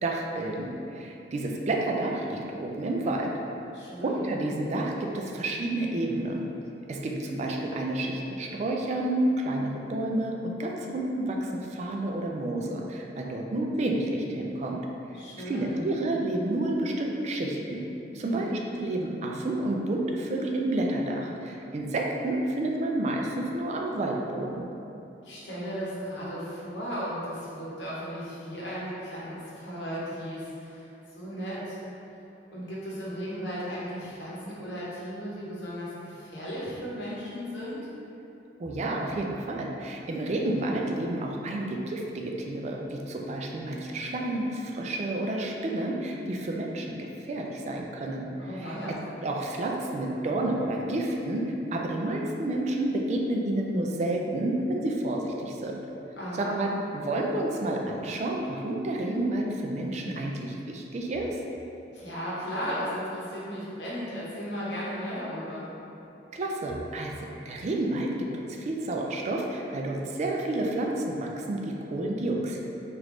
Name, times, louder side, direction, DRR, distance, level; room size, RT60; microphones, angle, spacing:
voice 1, 0.0-3.3 4.0-6.5 6.9-14.8 15.5-17.8 18.1-24.7 38.6-48.3 48.6-48.7 49.2-55.8 56.4-61.3 66.3-72.6, right 1 dB, 40° right, 0 dB, 0.3 m, -30 dB
voice 2, 3.7-4.2 15.1-15.9 18.2-18.5 25.2-31.8 32.5-37.8 48.4-49.0 56.2-56.6 61.9-65.7, equal, 70° left, -8 dB, 0.9 m, -35 dB
3.4 x 2.5 x 3.1 m, 2.9 s
head